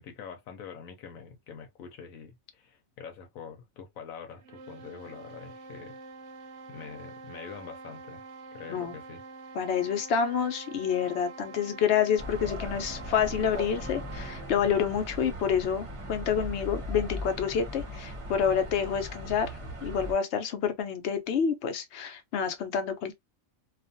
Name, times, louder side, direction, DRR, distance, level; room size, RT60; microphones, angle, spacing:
voice 1, 0.0-6.0 6.7-8.3 8.5-9.2, left 6 dB, 85° left, 1.0 m, -45 dB
sound 1, 4.3-14.6, right 4 dB, 70° right, 0.9 m, -46 dB
voice 2, 9.5-19.5 19.8-23.1, left 7 dB, 60° left, 0.9 m, -28 dB
sound 2, 12.2-20.1, equal, 35° right, 0.6 m, -38 dB
2.4 x 2.4 x 2.5 m
omnidirectional pair, 1.4 m